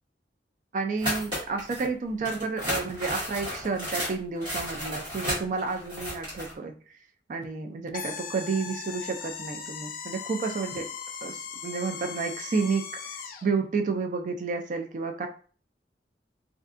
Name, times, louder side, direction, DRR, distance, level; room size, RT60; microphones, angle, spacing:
voice 1, 0.7-6.7 7.3-10.9 11.2-15.3, right 4 dB, 45° right, 5 dB, 0.3 m, -31 dB
sound 1, 1.0-1.9 2.2-6.5, equal, 30° right, 1.4 m, -33 dB
sound 2, 7.9-13.5, left 6 dB, 50° left, 0.3 m, -38 dB
2.6 x 2.4 x 2.4 m, 0.41 s
head